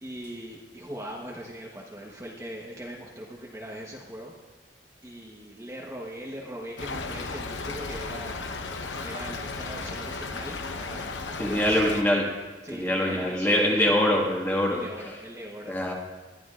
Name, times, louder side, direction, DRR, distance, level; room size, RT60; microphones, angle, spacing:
voice 1, 0.0-4.3 5.0-8.5 9.0-11.9 12.6-14.2 14.7-15.7, equal, 15° right, -3 dB, 1.1 m, -40 dB
Stream / Trickle dribble, 6.8-12.0, left 3 dB, 85° left, 0.9 m, -35 dB
voice 2, 11.4-12.3 12.7-14.8 15.7-15.9, left 1 dB, 10° left, -2 dB, 1.8 m, -23 dB
21.0 x 12.5 x 2.5 m, 1.3 s
head